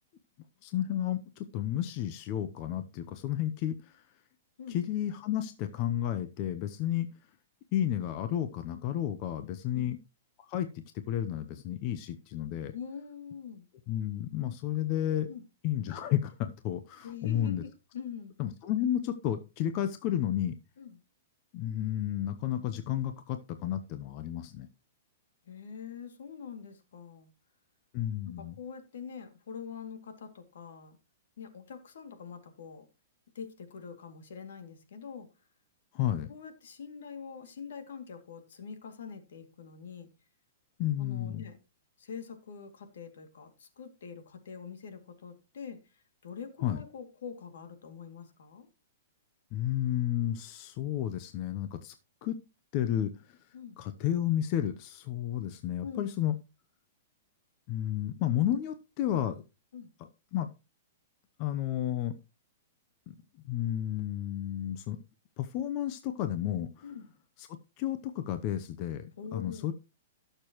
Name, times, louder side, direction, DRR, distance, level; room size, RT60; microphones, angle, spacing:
voice 1, 0.6-4.0 4.7-7.1 7.7-10.0 10.4-12.7 13.9-15.3 15.6-17.6 18.4-20.6 21.5-24.7 27.9-28.5 35.9-36.3 40.8-41.4 46.6-46.8 49.5-51.9 52.2-52.4 52.7-53.4 53.8-56.4 57.7-59.4 60.0-60.5 61.4-62.2 63.1-63.2 63.5-65.0 65.4-66.7 67.4-67.5 67.8-69.7, left 11 dB, 35° left, 9 dB, 0.7 m, -32 dB
voice 2, 12.7-13.6 14.9-15.4 17.0-18.3 20.8-21.0 25.5-27.3 28.2-31.0 31.4-32.8 33.3-35.3 36.3-40.1 41.0-41.6 42.0-48.7 53.5-53.8 55.8-56.1 59.7-59.9 66.8-67.0 69.2-69.7, left 6 dB, 75° left, 7 dB, 2.4 m, -44 dB
17.0 x 6.8 x 3.0 m, 0.27 s
hypercardioid pair, 160°, 0 cm